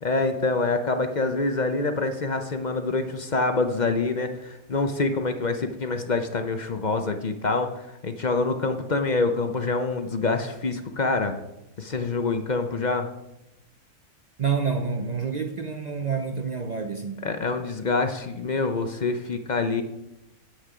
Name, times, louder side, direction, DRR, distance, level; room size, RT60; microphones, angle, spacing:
voice 1, 0.0-11.3 11.8-13.1 17.2-19.8, left 3 dB, 45° left, 7 dB, 0.6 m, -26 dB
voice 2, 14.4-17.3, right 6 dB, 50° right, 6 dB, 0.5 m, -28 dB
9.7 x 8.4 x 4.9 m, 0.91 s
omnidirectional pair, 1.6 m